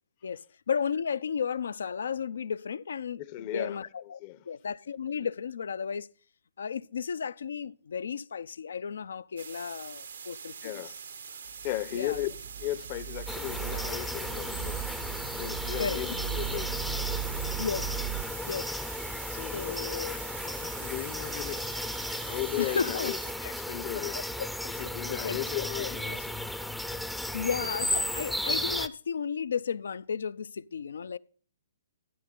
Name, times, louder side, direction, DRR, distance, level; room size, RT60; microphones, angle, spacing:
voice 1, 0.2-4.2 4.5-6.1 6.6-10.9 11.9-12.2 15.8-16.0 17.6-17.9 18.5-18.7 19.5-20.1 22.6-23.2 23.9-24.5 25.1-25.9 27.3-31.2, left 6 dB, 75° left, 0.4 m, -34 dB
voice 2, 3.2-3.8 4.2-4.4 10.6-11.0 11.6-14.8 15.4-16.7 19.2-21.6 22.2-24.2 24.7-26.4, left 15 dB, 40° left, 0.7 m, -36 dB
sound 1, 9.4-23.3, right 6 dB, 75° right, 0.9 m, -44 dB
sound 2, 11.5-18.2, right 11 dB, 55° right, 0.5 m, -38 dB
sound 3, 13.3-28.9, left 1 dB, ahead, 0.5 m, -35 dB
12.5 x 9.9 x 3.8 m
hypercardioid pair, 135°, 0 cm